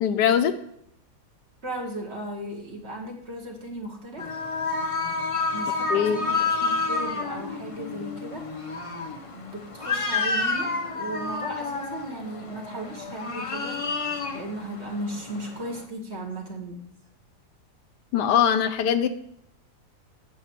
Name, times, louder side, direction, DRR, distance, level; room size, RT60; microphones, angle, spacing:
voice 1, 0.0-0.5 5.9-6.2 18.1-19.1, left 8 dB, 80° left, 11 dB, 1.3 m, -21 dB
voice 2, 1.6-4.2 5.5-8.6 9.2-16.8, right 1 dB, 45° right, 1 dB, 1.5 m, -36 dB
sound 1, 4.2-15.8, left 3 dB, 40° left, 0.5 m, -30 dB
8.2 x 7.3 x 4.5 m, 0.73 s
omnidirectional pair, 1.8 m